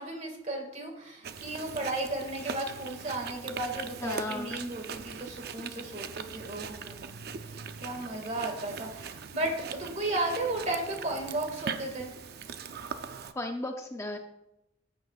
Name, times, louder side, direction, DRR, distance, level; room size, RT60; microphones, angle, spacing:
voice 1, 0.0-7.1 7.5-12.1, right 2 dB, 40° right, 3 dB, 1.9 m, -34 dB
Chewing mastication, 1.2-13.3, right 6 dB, 55° right, 0.5 m, -41 dB
voice 2, 4.0-4.6 13.3-14.2, left 2 dB, 15° left, 4 dB, 0.5 m, -35 dB
15.0 x 8.4 x 2.4 m, 0.90 s
head